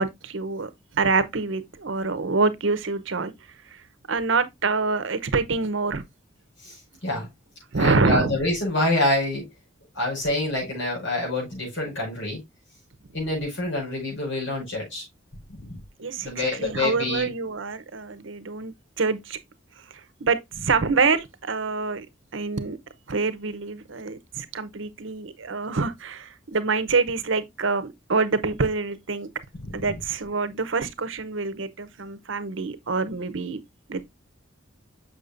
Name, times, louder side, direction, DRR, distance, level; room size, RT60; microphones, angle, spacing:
voice 1, 0.0-3.3 3.7-3.8 4.1-6.0 7.7-8.3 16.0-19.4 19.9-22.1 22.3-22.8 23.1-29.3 29.7-33.6 33.9-34.1, right 4 dB, 75° right, 0.8 m, -26 dB
voice 2, 6.6-7.3 7.7-9.5 9.9-12.4 13.1-15.0 15.5-15.8 16.2-17.3 29.6-29.9, left 1 dB, 70° left, 5.4 m, -27 dB
6.7 x 6.4 x 2.5 m
head